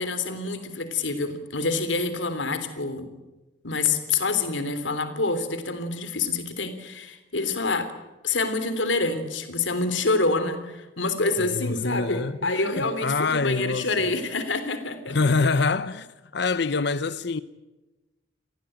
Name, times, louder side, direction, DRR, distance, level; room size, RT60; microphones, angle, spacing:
voice 1, 0.0-3.1 3.6-7.9 8.2-15.2, left 3 dB, 85° left, 3.4 m, -27 dB
voice 2, 11.4-14.1 15.1-17.4, left 4 dB, 65° left, 0.8 m, -26 dB
29.0 x 19.5 x 8.9 m
head